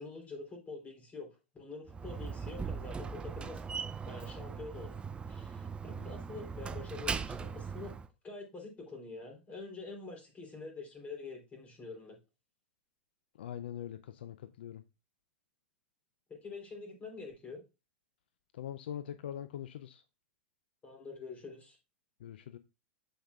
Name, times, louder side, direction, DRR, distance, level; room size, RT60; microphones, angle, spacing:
voice 1, 0.0-4.9 5.3-7.9 8.2-12.2 16.3-17.6 20.8-21.8, left 3 dB, 25° left, 3.4 m, -46 dB
Slam, 1.9-8.1, right 5 dB, 15° right, 0.5 m, -39 dB
voice 2, 13.4-14.8 18.5-20.0 22.2-22.6, left 10 dB, 70° left, 0.5 m, -42 dB
7.2 x 7.1 x 2.4 m
hypercardioid pair, 100°, 6 cm